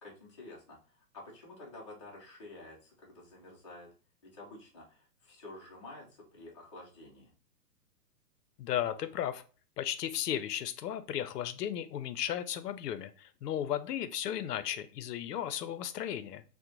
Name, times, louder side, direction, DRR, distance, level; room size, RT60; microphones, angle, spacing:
voice 1, 0.0-3.9 4.3-7.3, left 2 dB, 20° left, -5 dB, 0.4 m, -50 dB
voice 2, 8.6-9.4 9.8-16.4, left 10 dB, 80° left, 12 dB, 0.5 m, -35 dB
2.9 x 2.1 x 3.6 m, 0.37 s
hypercardioid pair, 155°, 48 cm